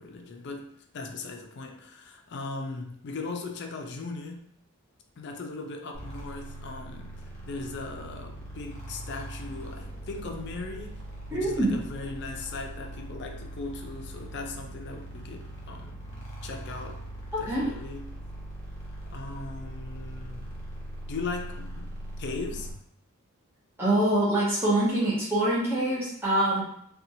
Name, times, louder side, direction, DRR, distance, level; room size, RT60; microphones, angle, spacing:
voice 1, 0.0-4.5 5.2-16.0 16.4-17.0 17.4-18.2 19.0-20.5 21.1-22.7, left 3 dB, 50° left, 3 dB, 0.4 m, -38 dB
sound 1, 5.9-22.7, right 1 dB, 35° left, 0.9 m, -41 dB
voice 2, 11.3-11.7 17.5-17.7 23.8-26.6, right 1 dB, 10° right, -8 dB, 0.6 m, -24 dB
2.8 x 2.3 x 2.7 m, 0.69 s
head